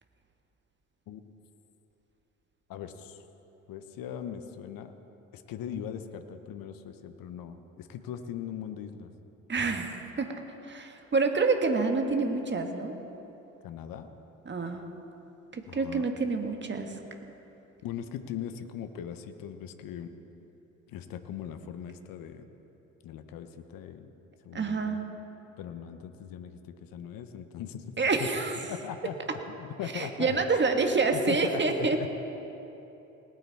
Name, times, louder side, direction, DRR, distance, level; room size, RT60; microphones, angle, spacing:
voice 1, 2.7-3.2 3.7-4.9 5.3-9.1 13.6-14.1 15.7-16.1 17.8-20.1 20.9-22.5 23.0-24.1 24.4-25.0 25.6-27.8 28.2-28.3 28.6-29.2 29.4-30.4 31.1-32.1, left 9 dB, 60° left, 9 dB, 1.1 m, -39 dB
voice 2, 9.5-10.3 10.6-13.0 14.4-14.8 15.5-16.9 24.5-25.0 28.0-28.6 29.9-32.0, right 4 dB, 30° right, 4 dB, 1.7 m, -27 dB
19.5 x 9.1 x 4.2 m, 2.9 s
hypercardioid pair, 50°, 39 cm